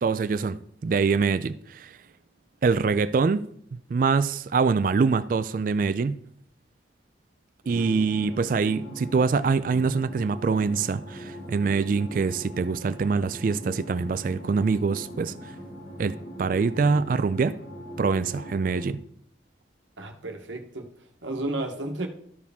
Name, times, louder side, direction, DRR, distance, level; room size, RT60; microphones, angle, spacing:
voice 1, 0.0-2.0 2.6-3.5 3.9-6.2 7.7-15.3 16.0-17.6 18.0-19.0, right 4 dB, 45° right, 0.3 m, -24 dB
sound 1, 7.6-18.9, equal, 55° left, 3.3 m, -41 dB
voice 2, 20.0-20.9 21.2-22.1, right 2 dB, 85° right, 1.2 m, -32 dB
13.5 x 4.7 x 3.5 m
head